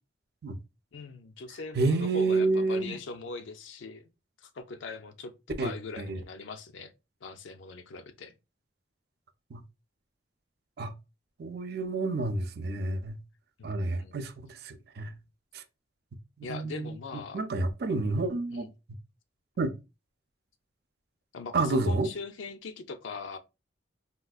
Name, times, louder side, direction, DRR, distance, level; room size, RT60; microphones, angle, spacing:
voice 1, 0.9-4.1 4.4-6.9 7.2-8.3 13.6-13.7 14.0-14.2 16.4-17.4 18.5-18.7 21.3-23.4, left 4 dB, 75° left, 0.4 m, -41 dB
voice 2, 1.8-3.0 5.6-5.7 6.0-6.2 9.5-9.6 10.8-10.9 11.4-13.2 13.6-15.1 15.5-15.6 16.5-17.0 17.3-18.7 19.6-19.7 21.5-22.1, right 3 dB, 55° right, 0.4 m, -29 dB
3.7 x 2.3 x 2.3 m
head